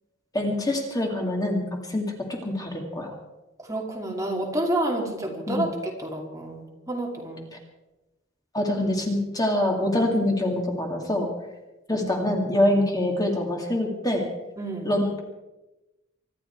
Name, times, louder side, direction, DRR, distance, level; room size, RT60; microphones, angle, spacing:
voice 1, 0.3-3.1 5.5-5.7 8.5-11.3 11.9-14.3 14.8-15.2, left 1 dB, 20° left, 1 dB, 2.3 m, -25 dB
voice 2, 3.7-7.5 14.6-14.9, right 1 dB, 15° right, 0 dB, 2.5 m, -29 dB
25.0 x 12.0 x 4.6 m, 1.0 s
head